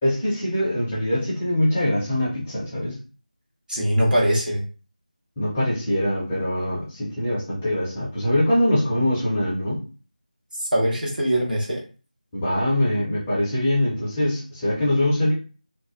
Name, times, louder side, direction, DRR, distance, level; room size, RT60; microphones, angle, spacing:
voice 1, 0.0-3.0 5.4-9.8 12.3-15.3, left 1 dB, 10° left, -8 dB, 0.4 m, -23 dB
voice 2, 3.7-4.6 10.6-11.8, equal, 75° right, -2 dB, 1.1 m, -22 dB
2.4 x 2.2 x 2.4 m, 0.36 s
figure-of-eight pair, 165°, 5 cm